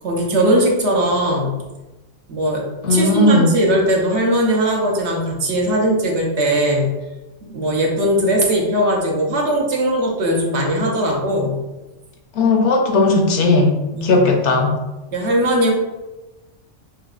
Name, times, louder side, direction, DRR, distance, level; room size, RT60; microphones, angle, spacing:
voice 1, 0.0-1.6 2.3-2.6 2.9-6.9 7.4-11.6 13.9-14.2 15.1-15.7, right 1 dB, 65° right, -1 dB, 1.0 m, -19 dB
voice 2, 2.8-3.5 12.4-13.7 14.0-14.7, left 2 dB, 70° left, 2 dB, 0.9 m, -16 dB
6.2 x 2.2 x 2.4 m, 1.1 s
omnidirectional pair, 1.3 m